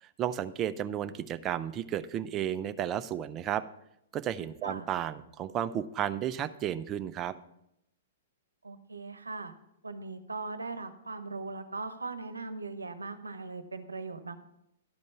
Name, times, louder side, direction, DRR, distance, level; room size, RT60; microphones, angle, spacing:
voice 1, 0.0-3.6 4.1-7.3, right 10 dB, 30° right, 12 dB, 0.5 m, -33 dB
voice 2, 8.6-9.5 9.8-14.4, right 3 dB, 85° right, 11 dB, 0.9 m, -39 dB
12.0 x 5.3 x 5.9 m, 0.80 s
figure-of-eight pair, 110°, 0 cm